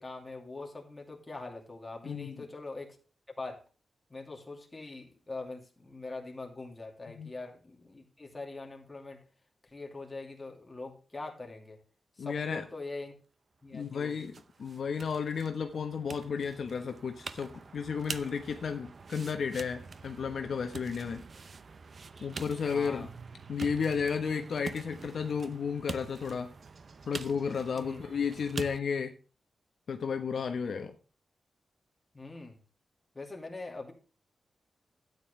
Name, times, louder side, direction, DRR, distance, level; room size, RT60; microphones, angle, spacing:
voice 1, 0.0-3.0 3.4-3.6 4.1-9.2 9.6-11.8 12.2-13.1 13.6-14.2 22.6-23.1 27.8-28.0 32.1-32.6 33.1-33.9, left 3 dB, 15° left, 1 dB, 2.8 m, -43 dB
voice 2, 2.0-2.3 7.1-7.3 12.2-12.6 13.7-14.3 14.6-21.2 22.2-23.1 23.5-26.5 27.1-29.1 29.9-30.9, left 6 dB, 60° left, 5 dB, 1.1 m, -33 dB
sound 1, 13.8-28.8, right 4 dB, 45° right, 0.7 m, -45 dB
13.0 x 9.3 x 3.3 m, 0.35 s
wide cardioid pair, 165°, 0 cm